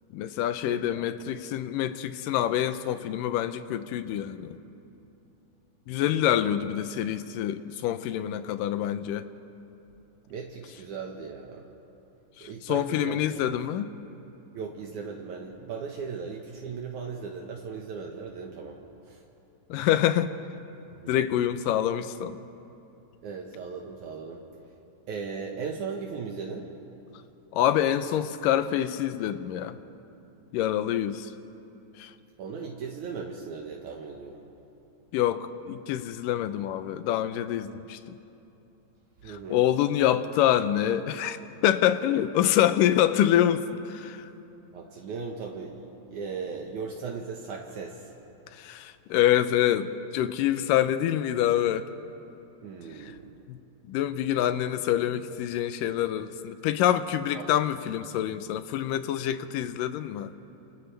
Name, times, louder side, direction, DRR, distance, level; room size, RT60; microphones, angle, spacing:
voice 1, 0.1-4.6 5.9-9.3 12.4-13.9 19.7-20.4 21.1-22.4 27.5-29.8 30.5-31.3 32.0-32.1 35.1-38.2 39.3-44.3 48.5-51.9 53.0-53.1 53.5-53.6 53.8-60.3, left 11 dB, 90° left, 11 dB, 2.4 m, -26 dB
voice 2, 0.6-1.0 6.1-6.6 10.3-11.7 12.4-13.3 14.5-18.8 19.0-19.2 21.0-21.1 23.2-24.4 25.1-26.7 32.4-34.4 39.2-39.7 44.7-48.1 52.6-53.3 57.3-57.5, right 5 dB, 70° right, 0 dB, 2.5 m, -37 dB
29.0 x 27.5 x 3.4 m, 2.9 s
omnidirectional pair, 3.8 m